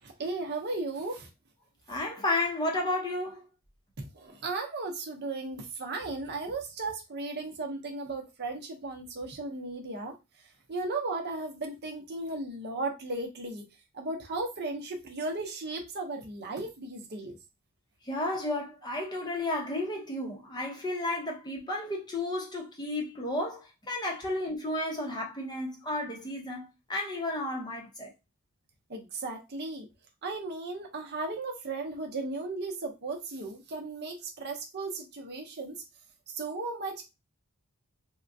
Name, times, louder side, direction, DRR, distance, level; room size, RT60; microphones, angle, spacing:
voice 1, 0.0-1.3 4.1-10.1 10.7-13.7 13.9-17.3 28.9-29.9 30.2-35.7 36.3-37.0, right 3 dB, 50° right, 0.7 m, -35 dB
voice 2, 1.9-3.4 18.0-28.1, left 1 dB, 20° left, 0.7 m, -32 dB
3.6 x 2.2 x 2.6 m
head